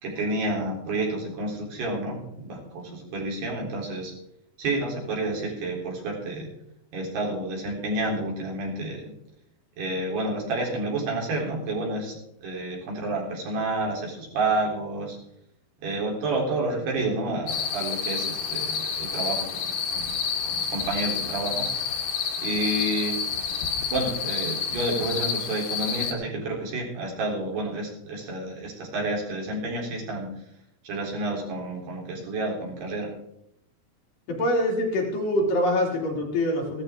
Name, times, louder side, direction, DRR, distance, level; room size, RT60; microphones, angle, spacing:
voice 1, 0.0-4.1 4.6-6.5 6.9-9.1 9.8-15.2 15.8-20.1 20.4-22.0 22.4-23.2 23.9-30.3 30.8-33.1, right 2 dB, 80° right, -2 dB, 5.8 m, -30 dB
sound 1, 17.5-26.1, left 6 dB, 75° left, 3.5 m, -29 dB
voice 2, 34.3-36.8, left 1 dB, 60° left, -2 dB, 4.9 m, -24 dB
16.5 x 14.0 x 3.7 m, 0.79 s
omnidirectional pair, 4.6 m